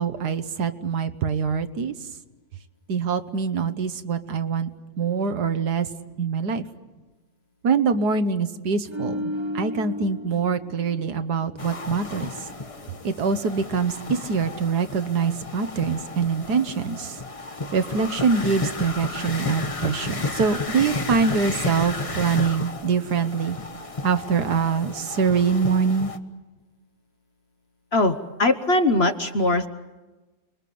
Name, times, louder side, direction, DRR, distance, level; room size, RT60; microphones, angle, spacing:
voice 1, 0.0-1.9 2.9-4.7 5.0-5.9 6.2-6.6 7.6-12.3 13.0-17.2 17.7-23.6 24.0-26.1, right 5 dB, 65° right, 10 dB, 1.7 m, -24 dB
sound 1, 8.9-12.2 12.5-12.7, left 1 dB, 20° right, 0.9 m, -34 dB
sound 2, 11.6-26.2, left 3 dB, 25° left, 1.1 m, -33 dB
voice 2, 27.9-29.7, left 2 dB, 40° left, 9 dB, 1.2 m, -21 dB
30.0 x 21.5 x 8.6 m, 1.2 s
omnidirectional pair, 1.9 m